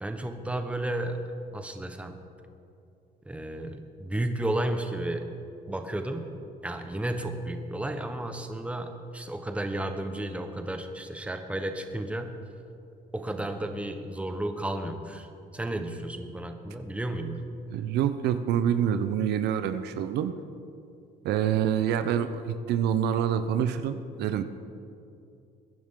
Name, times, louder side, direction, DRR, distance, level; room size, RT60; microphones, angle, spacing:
voice 1, 0.0-1.2 1.5-2.2 3.2-5.2 5.7-6.3 6.6-12.4 13.1-17.4, right 1 dB, 5° right, 6 dB, 1.1 m, -33 dB
voice 2, 17.7-20.3 21.2-24.4, right 9 dB, 80° right, 10 dB, 0.7 m, -26 dB
21.5 x 10.5 x 3.8 m, 2.6 s
cardioid pair, 110°, 17 cm